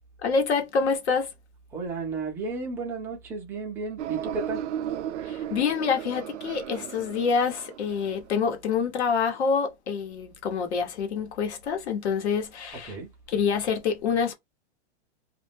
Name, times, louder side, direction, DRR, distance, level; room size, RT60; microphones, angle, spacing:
voice 1, 0.2-1.3 5.2-13.0 13.3-14.3, left 5 dB, 70° left, 1.1 m, -26 dB
voice 2, 1.7-4.6 12.8-13.1, right 3 dB, 5° right, 0.4 m, -33 dB
sound 1, 4.0-8.3, right 10 dB, 80° right, 0.5 m, -35 dB
2.5 x 2.1 x 3.3 m
supercardioid pair, 155°, 34 cm